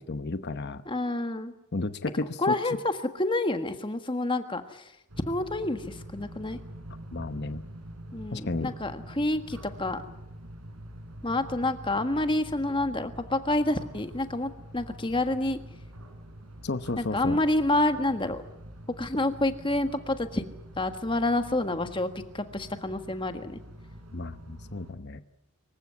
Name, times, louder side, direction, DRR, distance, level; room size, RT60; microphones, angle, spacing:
voice 1, 0.0-0.8 1.7-2.6 7.1-7.6 8.3-8.7 16.6-17.4 24.1-25.2, left 2 dB, 50° left, 11 dB, 0.9 m, -32 dB
voice 2, 0.9-1.5 2.4-4.9 5.3-6.6 8.1-10.0 11.2-15.6 17.0-18.4 19.0-20.5 20.8-23.6, left 2 dB, 20° left, 8 dB, 1.5 m, -28 dB
sound 1, 5.1-24.9, right 1 dB, 90° right, 4.5 m, -45 dB
25.0 x 16.0 x 9.6 m, 0.87 s
head